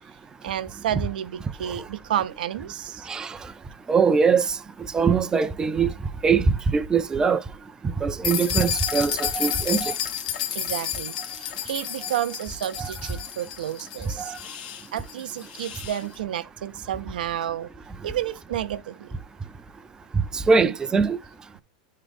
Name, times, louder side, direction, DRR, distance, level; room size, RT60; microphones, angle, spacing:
voice 1, 0.4-3.1 10.5-14.3 14.9-17.7 18.0-19.1 20.6-20.7, right 11 dB, 80° right, 0.6 m, -31 dB
voice 2, 3.1-3.4 3.9-4.6 4.9-5.9 6.2-7.4 8.0-9.9 12.8-12.9 14.2-14.4 20.3-21.2, right 5 dB, 15° right, 0.5 m, -22 dB
sound 1, 8.2-16.0, left 9 dB, 70° left, 1.3 m, -31 dB
9.9 x 3.7 x 3.5 m
hypercardioid pair, 120°, 5 cm